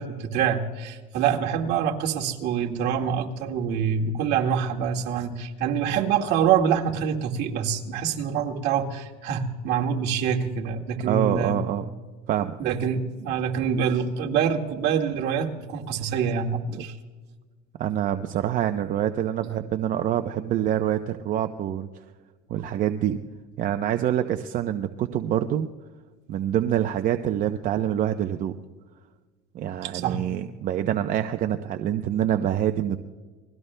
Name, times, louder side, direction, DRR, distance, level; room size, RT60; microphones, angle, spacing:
voice 1, 0.0-11.6 12.6-17.0 29.8-30.2, right 7 dB, 65° right, 1 dB, 1.9 m, -25 dB
voice 2, 11.0-11.9 12.3-12.6 16.7-16.8 17.8-21.9 22.5-23.2 23.6-25.7 26.3-28.6 29.5-33.0, right 11 dB, 45° right, 7 dB, 0.7 m, -26 dB
29.5 x 21.5 x 2.2 m, 1.4 s
cardioid pair, 125°, 19 cm